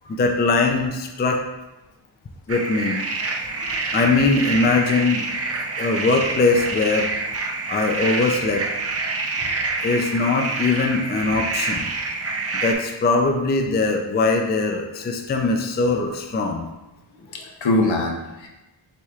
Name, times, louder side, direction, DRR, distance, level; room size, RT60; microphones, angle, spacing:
voice 1, 0.1-1.4 2.5-3.0 3.9-5.2 5.8-7.1 7.7-8.6 9.8-11.9 12.6-16.6, left 3 dB, 25° left, 3 dB, 0.4 m, -21 dB
sound 1, 2.5-12.7, right 3 dB, 30° right, 0.5 m, -27 dB
voice 2, 3.4-3.8 5.7-5.8 17.3-18.5, left 2 dB, 65° left, 0 dB, 0.9 m, -24 dB
4.7 x 4.2 x 2.4 m, 1.0 s
wide cardioid pair, 80°, 49 cm